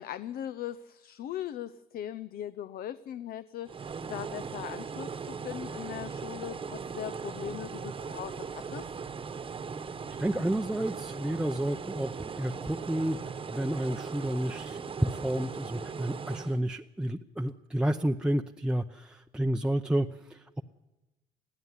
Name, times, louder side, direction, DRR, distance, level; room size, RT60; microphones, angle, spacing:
voice 1, 0.0-8.9, left 11 dB, 60° left, 12 dB, 0.7 m, -39 dB
sound 1, 3.6-16.6, right 5 dB, 30° right, 1.2 m, -39 dB
voice 2, 10.1-20.6, right 1 dB, 5° right, 4 dB, 0.7 m, -31 dB
21.0 x 15.0 x 9.8 m, 1.0 s
cardioid pair, 110°, 17 cm